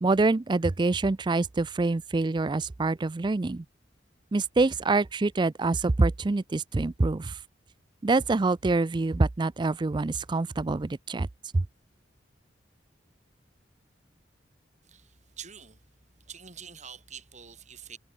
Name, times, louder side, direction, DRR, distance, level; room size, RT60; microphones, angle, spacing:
voice 1, 0.0-3.6 4.3-7.4 8.0-11.3 11.5-11.6, right 3 dB, 25° right, 0.4 m, -25 dB
voice 2, 14.9-15.8 16.3-18.0, right 7 dB, 40° right, 5.6 m, -46 dB
head